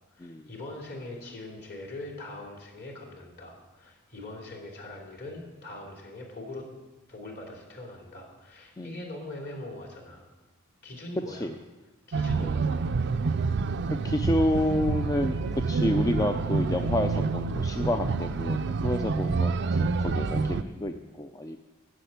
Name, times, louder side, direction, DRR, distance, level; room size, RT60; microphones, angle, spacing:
voice 1, 0.1-6.7 7.1-10.2 10.8-11.5 12.1-12.9, left 2 dB, 50° left, 0 dB, 3.0 m, -42 dB
sound 1, 12.1-20.6, right 4 dB, 55° right, 0.5 m, -27 dB
voice 2, 14.0-15.4 15.7-21.6, left 1 dB, 15° left, 6 dB, 0.4 m, -29 dB
10.0 x 7.4 x 9.3 m, 1.2 s
head